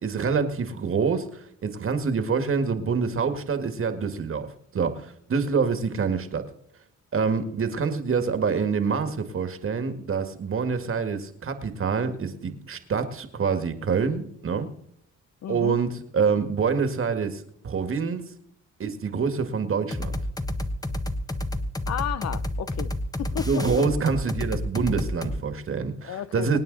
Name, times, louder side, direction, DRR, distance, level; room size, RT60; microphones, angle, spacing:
voice 1, 0.0-4.5 4.7-6.5 7.1-14.7 15.5-18.2 18.8-20.2 23.5-26.6, right 5 dB, 45° right, 1.9 m, -26 dB
voice 2, 15.4-15.8 21.9-22.9 23.2-23.9 26.0-26.6, left 10 dB, 60° left, 0.7 m, -32 dB
sound 1, 19.9-25.4, left 1 dB, 10° left, 1.2 m, -30 dB
25.5 x 8.8 x 4.0 m
cardioid pair, 90°, 30 cm